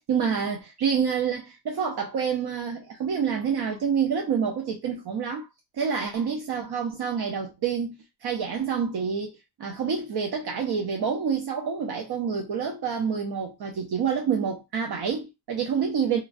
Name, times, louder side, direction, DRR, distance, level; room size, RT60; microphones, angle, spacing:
voice 1, 0.1-5.5 5.7-7.9 8.2-9.3 9.6-16.2, right 6 dB, 75° right, 0.6 m, -27 dB
3.1 x 2.2 x 2.4 m
cardioid pair, 70°, 39 cm